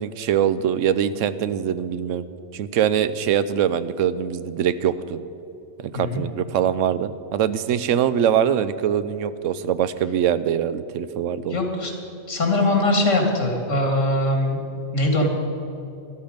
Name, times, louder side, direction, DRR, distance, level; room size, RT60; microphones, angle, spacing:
voice 1, 0.0-2.3 2.5-5.2 5.8-11.6, right 9 dB, 90° right, 14 dB, 1.0 m, -23 dB
voice 2, 5.9-6.2 11.5-11.9 12.3-14.6 14.9-15.3, left 1 dB, 85° left, 2 dB, 2.4 m, -21 dB
13.0 x 12.5 x 5.1 m, 2.8 s
omnidirectional pair, 1.3 m